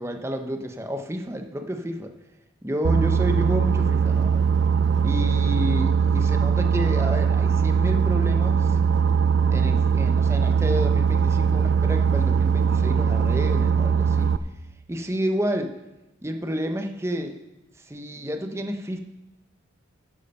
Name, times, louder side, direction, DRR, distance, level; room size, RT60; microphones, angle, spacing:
voice 1, 0.0-2.1 2.6-4.4 5.0-8.8 9.5-14.3 14.9-15.7 16.2-17.3 17.8-19.0, equal, 15° right, 5 dB, 0.8 m, -30 dB
Boat Water vehicle, 2.8-14.4, right 6 dB, 65° right, 0.4 m, -21 dB
10.5 x 8.6 x 5.4 m, 0.99 s
head